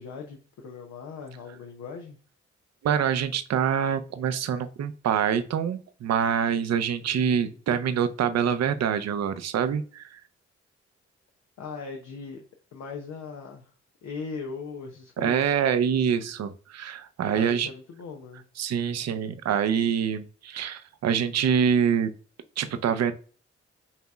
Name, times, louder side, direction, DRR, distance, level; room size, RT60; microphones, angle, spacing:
voice 1, 0.0-2.2 7.0-7.6 11.6-12.4 12.7-13.7 14.0-15.6 17.3-18.4, left 5 dB, 75° left, 2 dB, 0.7 m, -39 dB
voice 2, 2.8-10.2 15.2-17.7 18.6-22.1 22.6-23.1, right 8 dB, 65° right, 11 dB, 0.6 m, -25 dB
5.7 x 2.9 x 2.3 m, 0.40 s
supercardioid pair, 45°, 29 cm